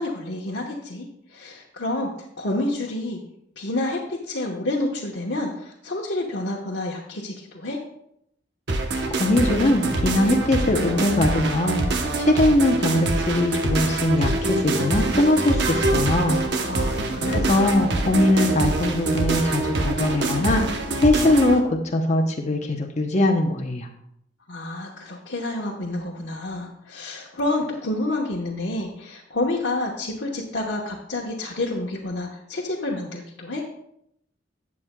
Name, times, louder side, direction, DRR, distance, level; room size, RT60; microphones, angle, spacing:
voice 1, 0.0-2.1 2.4-3.2 3.6-7.8 16.5-17.5 24.5-33.6, left 2 dB, 70° left, -4 dB, 1.1 m, -29 dB
sound 1, 8.7-21.6, right 2 dB, 65° right, 0.9 m, -25 dB
voice 2, 9.2-11.8 12.1-16.4 17.2-20.6 21.0-23.9, left 1 dB, 40° left, 2 dB, 0.7 m, -21 dB
12.0 x 8.4 x 2.2 m, 0.76 s
head